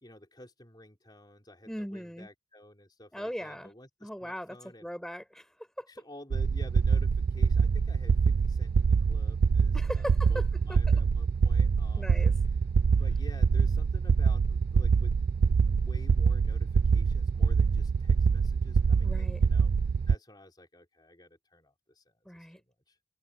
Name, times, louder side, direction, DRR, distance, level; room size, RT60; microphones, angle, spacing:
voice 1, 0.0-4.9 5.9-12.1 12.4-12.6 13.0-19.7 20.1-23.0, left 1 dB, 20° left, 4.0 m, -52 dB
voice 2, 1.7-2.3 3.1-3.7 4.0-4.6 4.8-5.9 9.7-10.4 10.7-10.8 12.0-12.3 19.0-19.4 22.2-22.6, equal, 5° left, 5.9 m, -39 dB
sound 1, 6.3-20.2, right 5 dB, 55° right, 0.3 m, -25 dB
head